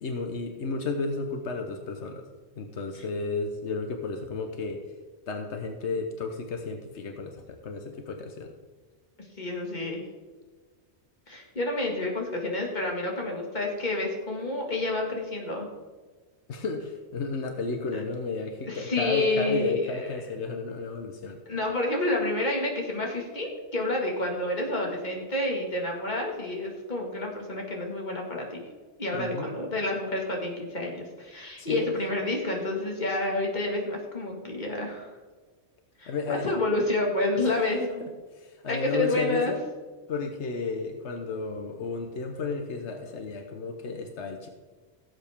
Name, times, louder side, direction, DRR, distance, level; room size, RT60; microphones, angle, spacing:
voice 1, 0.0-2.3 2.6-4.9 5.3-8.5 16.5-21.4 29.1-29.5 31.6-31.9 36.1-36.5 37.4-37.5 37.8-39.6 40.1-44.5, left 4 dB, 85° left, 5 dB, 1.2 m, -33 dB
voice 2, 9.4-10.0 11.3-15.7 17.9-18.0 18.7-19.7 21.5-28.6 29.0-35.1 36.0-38.0 38.7-39.5, left 2 dB, 40° left, 0 dB, 2.2 m, -29 dB
16.5 x 8.0 x 3.6 m, 1.4 s
omnidirectional pair, 1.1 m